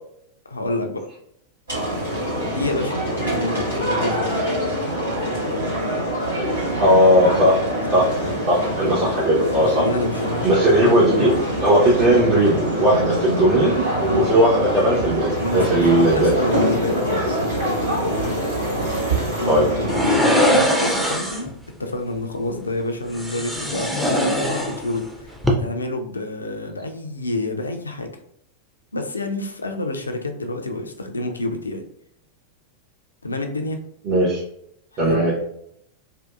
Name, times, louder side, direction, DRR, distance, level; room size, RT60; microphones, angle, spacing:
voice 1, 0.5-1.1 2.4-4.6 7.9-8.4 9.6-11.0 14.1-14.3 15.4-18.4 19.4-21.5 21.8-28.1 28.9-31.8 33.2-33.8 34.9-35.3, left 2 dB, 75° left, 5 dB, 0.3 m, -28 dB
sound 1, 1.7-20.2, equal, 75° right, 1.3 m, -24 dB
voice 2, 6.8-7.6 7.9-8.0 8.5-9.8 10.4-11.3 11.6-16.3 19.5-19.7 34.1-34.4 35.0-35.3, right 1 dB, 40° right, -5 dB, 0.6 m, -17 dB
sound 2, 19.9-21.5 23.1-25.1 25.3-25.5, equal, ahead, 0.4 m, -21 dB
2.6 x 2.2 x 2.3 m, 0.73 s
figure-of-eight pair, 90°, 0 cm